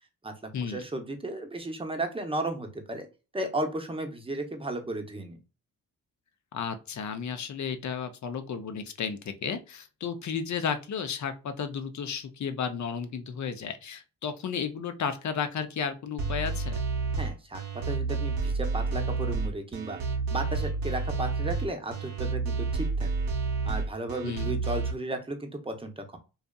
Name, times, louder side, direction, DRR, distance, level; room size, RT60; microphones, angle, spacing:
voice 1, 0.6-3.1 3.3-5.4 17.2-20.0 20.3-23.1 23.6-26.2, right 2 dB, 15° right, 5 dB, 0.6 m, -34 dB
voice 2, 6.5-16.7 24.2-24.5, left 6 dB, 50° left, 8 dB, 0.5 m, -33 dB
sound 1, 16.2-24.9, right 4 dB, 70° right, 0.7 m, -30 dB
2.7 x 2.3 x 2.2 m, 0.31 s
cardioid pair, 65°, 37 cm